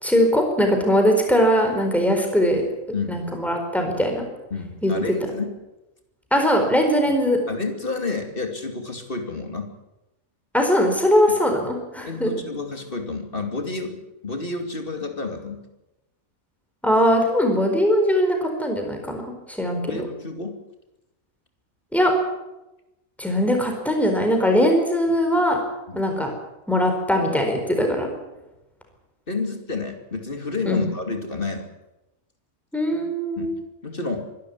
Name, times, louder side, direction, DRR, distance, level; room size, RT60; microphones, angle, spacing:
voice 1, 0.0-2.6 3.1-4.2 4.8-4.9 6.3-7.4 10.5-12.3 16.8-20.0 21.9-22.1 23.2-25.6 25.9-26.3 26.7-28.1 30.7-30.8 32.7-33.5, equal, ahead, 3 dB, 4.5 m, -20 dB
voice 2, 4.5-5.5 7.5-9.7 12.1-15.6 19.9-20.6 25.9-26.1 29.3-31.7 33.4-33.6 33.8-34.3, left 3 dB, 40° left, 5 dB, 2.8 m, -30 dB
24.0 x 12.5 x 9.6 m, 0.97 s
omnidirectional pair, 1.4 m